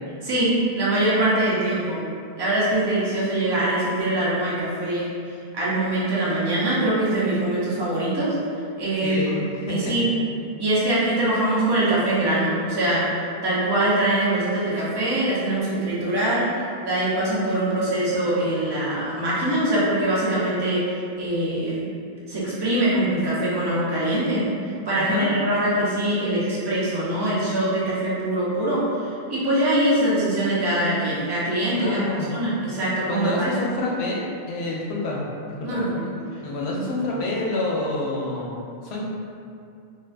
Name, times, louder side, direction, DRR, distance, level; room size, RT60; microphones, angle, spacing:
voice 1, 0.2-2.0 2.4-5.1 5.5-8.4 8.8-9.2 9.7-10.1 10.6-21.9 22.3-24.4 24.8-32.0 32.3-33.5 35.6-36.0, right 1 dB, 30° right, -8 dB, 0.5 m, -23 dB
voice 2, 9.0-10.0 25.0-25.3 31.8-32.3 33.1-34.2 34.5-35.2 35.5-35.8 36.4-39.1, left 2 dB, 85° left, -4 dB, 0.8 m, -27 dB
2.4 x 2.2 x 2.4 m, 2.4 s
omnidirectional pair, 1.0 m